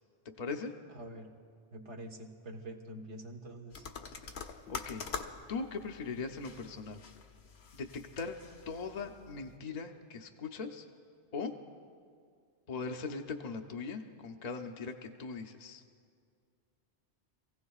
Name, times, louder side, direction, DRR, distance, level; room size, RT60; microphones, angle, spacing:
voice 1, 0.4-0.7 4.7-5.1 5.5-7.0 7.7-7.9 8.2-8.4 8.7-10.9 11.3-11.5 12.7-15.8, left 4 dB, 45° left, 4 dB, 0.7 m, -39 dB
voice 2, 0.9-1.3 1.7-3.8 4.2-4.3, right 1 dB, 80° right, 2 dB, 1.6 m, -46 dB
sound 1, 3.7-9.6, left 5 dB, 70° left, 1.1 m, -46 dB
26.5 x 16.0 x 2.4 m, 2.2 s
omnidirectional pair, 1.2 m